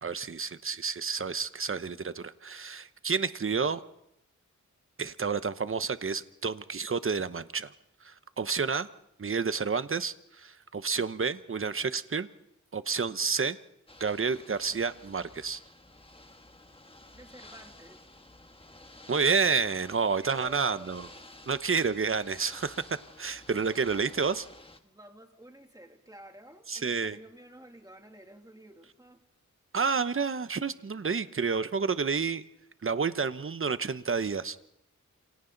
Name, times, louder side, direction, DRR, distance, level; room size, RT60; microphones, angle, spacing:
voice 1, 0.0-3.8 5.0-7.7 8.0-8.9 9.2-12.3 12.7-13.6 14.0-15.6 19.1-21.1 21.5-22.8 23.2-24.5 26.7-27.2 29.7-32.4 32.8-34.6, right 5 dB, 40° right, 13 dB, 1.0 m, -30 dB
Ocean / Boat Water vehicle, 13.9-24.8, left 2 dB, 20° left, 1.6 m, -52 dB
voice 2, 17.1-18.0 20.2-21.1 24.8-29.2, right 1 dB, 10° right, 3 dB, 2.8 m, -51 dB
30.0 x 28.0 x 4.0 m, 0.80 s
wide cardioid pair, 85°, 31 cm